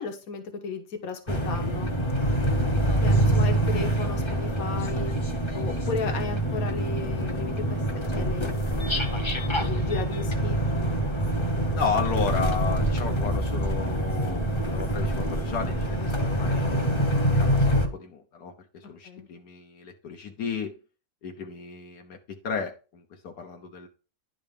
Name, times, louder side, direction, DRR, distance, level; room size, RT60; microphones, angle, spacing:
voice 1, 0.0-1.9 3.0-5.1 5.5-7.8 8.1-8.8 9.6-10.6 19.0-19.3, left 5 dB, 65° left, 5 dB, 1.7 m, -34 dB
sound 1, 1.3-17.9, right 1 dB, 20° left, 0.8 m, -25 dB
voice 2, 11.7-16.7 17.3-20.7 21.2-23.9, left 6 dB, 85° left, 3 dB, 1.6 m, -33 dB
10.5 x 3.9 x 5.1 m, 0.33 s
omnidirectional pair, 1.6 m